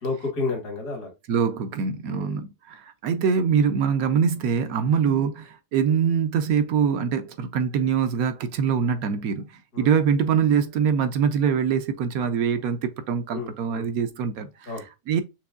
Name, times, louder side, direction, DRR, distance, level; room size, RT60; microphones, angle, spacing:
voice 1, 0.0-1.1 2.1-2.4 9.7-9.9 13.3-13.9 14.7-14.8, left 3 dB, 80° left, 2.1 m, -31 dB
voice 2, 1.3-15.2, right 7 dB, 70° right, 1.0 m, -24 dB
6.1 x 2.9 x 2.4 m
omnidirectional pair, 1.7 m